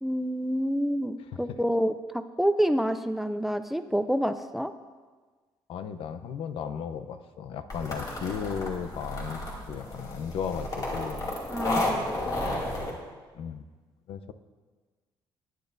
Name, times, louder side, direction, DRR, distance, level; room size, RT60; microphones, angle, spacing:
voice 1, 0.0-4.7 11.5-12.5, equal, ahead, 10 dB, 0.4 m, -28 dB
voice 2, 5.7-9.4 9.7-11.2 13.3-13.7 14.1-14.3, left 7 dB, 75° left, 11 dB, 0.7 m, -35 dB
sound 1, 7.7-12.9, left 1 dB, 40° left, 2.4 m, -32 dB
19.0 x 10.5 x 2.6 m, 1.4 s
cardioid pair, 145°, 9 cm